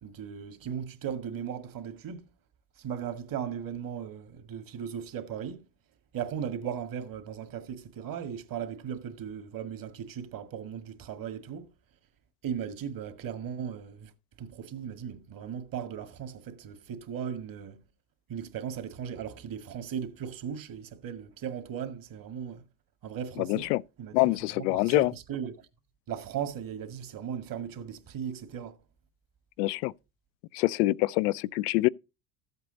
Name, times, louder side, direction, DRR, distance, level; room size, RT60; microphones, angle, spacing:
voice 1, 0.0-2.2 2.8-5.7 6.1-11.7 12.4-14.1 14.4-17.8 18.3-22.6 23.0-23.7 24.0-25.5 26.1-28.8, right 8 dB, 45° right, 2.1 m, -37 dB
voice 2, 23.4-23.8 24.1-25.1 29.6-29.9 30.5-31.9, left 20 dB, 80° left, 0.6 m, -25 dB
14.0 x 8.1 x 4.0 m
supercardioid pair, 95°, 46 cm